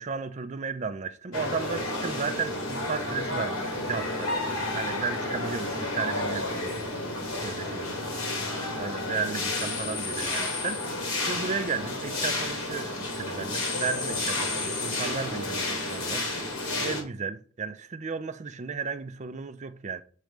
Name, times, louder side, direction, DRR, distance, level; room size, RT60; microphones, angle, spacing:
voice 1, 0.0-4.3 4.7-6.9 7.4-7.9 8.8-10.8 11.2-20.0, right 5 dB, 35° right, 0.4 m, -34 dB
sound 1, 1.3-17.0, left 2 dB, 80° left, 2.4 m, -31 dB
7.4 x 3.1 x 5.0 m
head